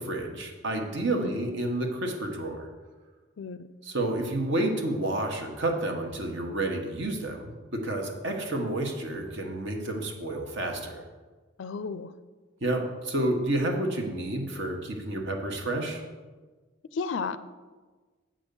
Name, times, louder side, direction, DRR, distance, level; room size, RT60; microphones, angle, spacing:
voice 1, 0.0-2.7 3.8-11.0 12.6-16.0, right 1 dB, 55° right, 3 dB, 1.3 m, -30 dB
voice 2, 11.6-12.1 16.9-17.4, left 5 dB, 60° left, 14 dB, 0.4 m, -33 dB
7.7 x 5.3 x 6.9 m, 1.3 s
head